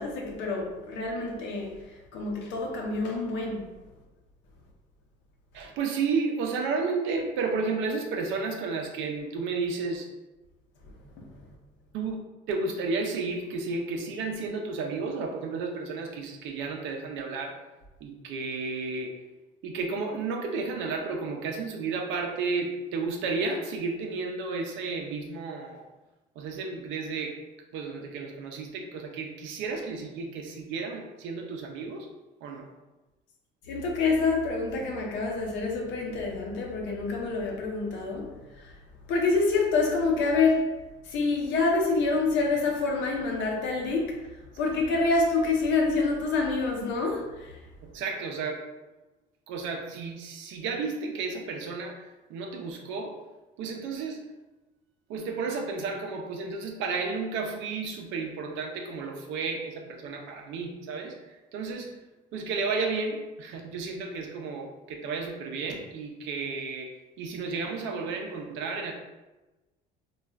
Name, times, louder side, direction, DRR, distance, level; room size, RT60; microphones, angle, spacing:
voice 1, 0.0-3.7 11.1-11.5 33.6-38.7 39.1-40.7 41.0-47.6, left 3 dB, 75° left, 0.7 m, -27 dB
voice 2, 5.5-10.1 11.9-12.2 12.5-17.6 18.0-19.2 19.6-25.9 26.4-27.4 27.7-32.1 32.4-32.7 47.8-48.7 49.5-53.2 53.6-54.3 55.1-61.9 62.3-68.9, right 4 dB, 80° right, 0.6 m, -32 dB
3.2 x 2.4 x 2.3 m
cardioid pair, 115°, 19 cm